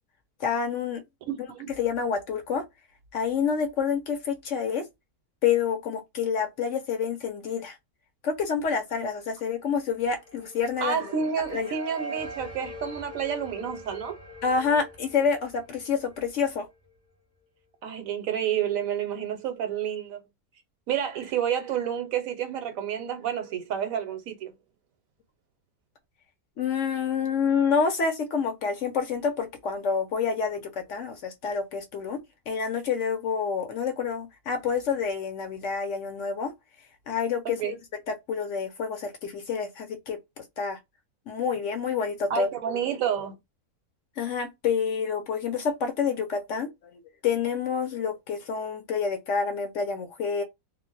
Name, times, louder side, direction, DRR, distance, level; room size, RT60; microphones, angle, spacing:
voice 1, 0.4-1.0 1.8-2.6 3.1-4.9 5.4-7.8 8.2-11.1 11.5-11.7 14.4-16.7 26.6-36.5 37.1-37.8 38.1-40.8 41.3-42.5 44.2-50.4, left 6 dB, 65° left, 0.8 m, -28 dB
voice 2, 1.3-1.7 10.8-14.2 17.8-20.2 20.9-24.5 37.4-37.7 42.3-43.4, right 8 dB, 70° right, 1.0 m, -29 dB
sound 1, 9.9-17.0, equal, 15° left, 0.5 m, -42 dB
2.6 x 2.1 x 3.7 m
omnidirectional pair, 1.6 m